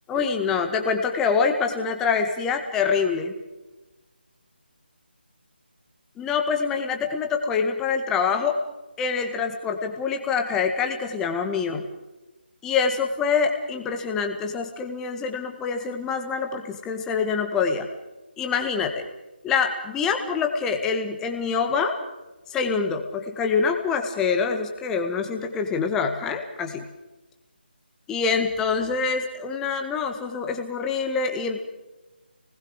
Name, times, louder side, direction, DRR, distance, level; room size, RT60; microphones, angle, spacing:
voice 1, 0.1-3.3 6.2-8.6 9.0-11.8 12.6-17.9 18.4-19.1 19.4-22.0 22.5-26.9 28.1-31.6, left 5 dB, 10° left, 5 dB, 1.6 m, -25 dB
29.5 x 20.0 x 5.0 m, 1.1 s
figure-of-eight pair, 155°, 6 cm